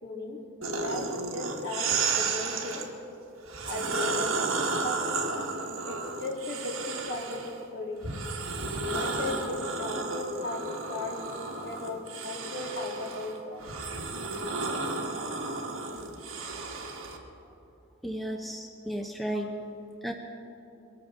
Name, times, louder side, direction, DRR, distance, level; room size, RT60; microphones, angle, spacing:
voice 1, 0.0-0.4 0.7-2.9 3.6-5.2 5.9-8.3 8.9-13.7, left 2 dB, 55° left, -2 dB, 2.3 m, -37 dB
sound 1, 0.6-2.9 3.5-7.5 8.0-17.2, right 3 dB, 70° right, 1.7 m, -32 dB
voice 2, 18.0-19.5 20.0-20.1, equal, ahead, 1 dB, 0.8 m, -33 dB
23.5 x 14.0 x 3.8 m, 2.9 s
head